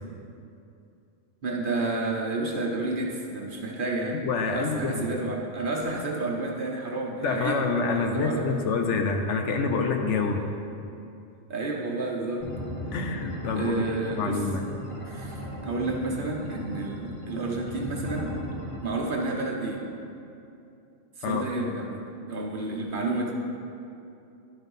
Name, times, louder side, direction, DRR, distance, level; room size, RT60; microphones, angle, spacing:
voice 1, 1.4-4.2 4.5-7.6 7.9-8.6 11.5-12.5 12.9-13.0 13.5-14.5 15.0-18.3 18.8-19.9 21.2-23.3, right 2 dB, 45° right, -1 dB, 0.9 m, -30 dB
voice 2, 4.1-5.1 7.2-10.4 12.9-13.8 14.1-14.6 21.2-21.4, left 4 dB, 70° left, 3 dB, 1.0 m, -27 dB
sound 1, 12.4-18.8, equal, 30° left, 0.9 m, -37 dB
10.5 x 4.0 x 5.4 m, 2.6 s
omnidirectional pair, 1.3 m